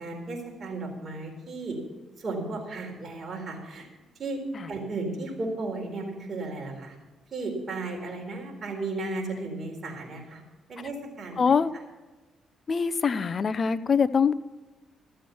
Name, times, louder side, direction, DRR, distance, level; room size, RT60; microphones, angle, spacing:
voice 1, 0.0-1.8 2.2-3.9 4.2-4.4 4.7-6.9 7.3-10.4 10.7-11.4, right 2 dB, 40° right, 0 dB, 4.0 m, -34 dB
voice 2, 11.4-11.7 12.7-14.3, left 6 dB, 40° left, 12 dB, 0.6 m, -23 dB
14.0 x 7.7 x 7.1 m, 1.2 s
cardioid pair, 90°, 0 cm